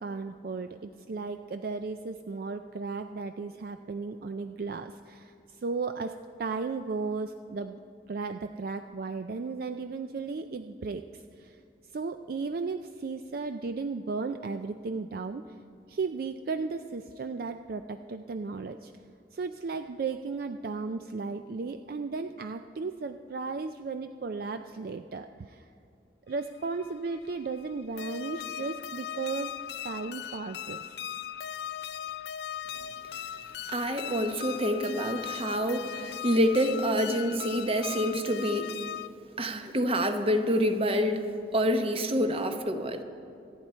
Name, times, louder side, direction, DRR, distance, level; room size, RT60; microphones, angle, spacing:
voice 1, 0.0-7.8 8.1-11.6 11.9-15.5 15.9-18.9 19.3-25.7 26.3-29.6 29.8-31.0, right 4 dB, 55° right, 9 dB, 0.4 m, -35 dB
sound 1, 26.4-39.1, left 10 dB, 65° left, 0.4 m, -39 dB
voice 2, 33.7-38.7 39.4-41.2 41.5-43.0, equal, 30° right, 7 dB, 1.0 m, -27 dB
25.0 x 9.7 x 4.4 m, 2.5 s
head